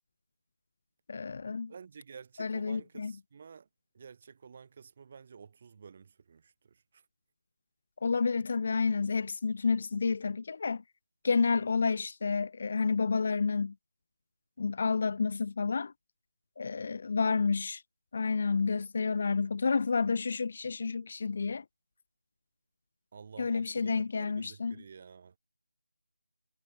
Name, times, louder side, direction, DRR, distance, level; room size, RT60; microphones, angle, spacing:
voice 1, 1.1-1.7 2.4-3.1 8.0-10.8 11.2-13.7 14.6-15.9 16.6-17.8 18.1-21.6 23.4-24.7, left 4 dB, 40° left, 1.0 m, -30 dB
voice 2, 1.7-3.7 3.9-7.1 17.2-17.5 23.1-25.4, right 6 dB, 35° right, 6.1 m, -51 dB
figure-of-eight pair, 160°, 0 cm